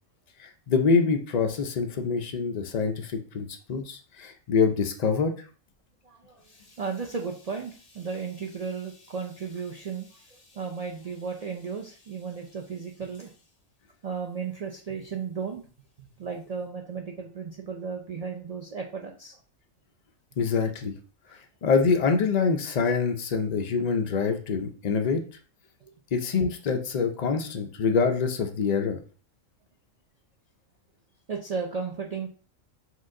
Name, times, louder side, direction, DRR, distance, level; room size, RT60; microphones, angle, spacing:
voice 1, 0.4-5.3 20.4-20.9 21.6-25.2 26.1-29.0, left 5 dB, 80° left, 5 dB, 0.3 m, -25 dB
voice 2, 6.0-13.3 14.0-15.6 16.0-19.4 25.8-25.9 31.3-32.3, right 5 dB, 80° right, 1 dB, 0.3 m, -35 dB
4.6 x 2.4 x 3.7 m, 0.39 s
omnidirectional pair, 1.4 m